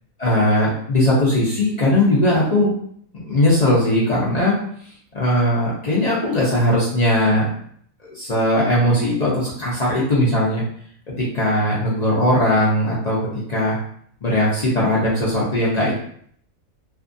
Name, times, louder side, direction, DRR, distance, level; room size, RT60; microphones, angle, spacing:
voice 1, 0.2-2.7 3.1-4.6 5.1-7.5 8.0-10.6 11.2-13.2 13.5-13.8 14.2-15.9, left 1 dB, 45° left, -6 dB, 0.5 m, -19 dB
2.6 x 2.4 x 2.5 m, 0.62 s
omnidirectional pair, 1.5 m